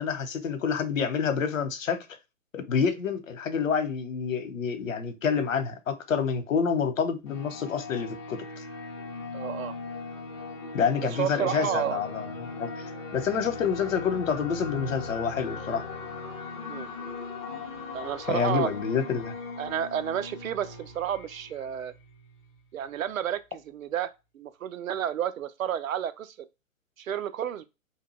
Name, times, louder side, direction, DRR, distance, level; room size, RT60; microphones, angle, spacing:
voice 1, 0.0-2.0 2.5-8.4 10.7-12.7 13.1-15.8 18.3-19.3, left 6 dB, 70° left, 0.8 m, -28 dB
sound 1, 7.3-22.6, left 4 dB, 25° left, 0.8 m, -39 dB
voice 2, 9.3-9.8 11.1-12.0 16.7-16.9 17.9-18.7 19.6-21.9 22.7-26.3 27.0-27.6, right 10 dB, 80° right, 0.6 m, -31 dB
2.8 x 2.2 x 3.0 m
hypercardioid pair, 140°, 40 cm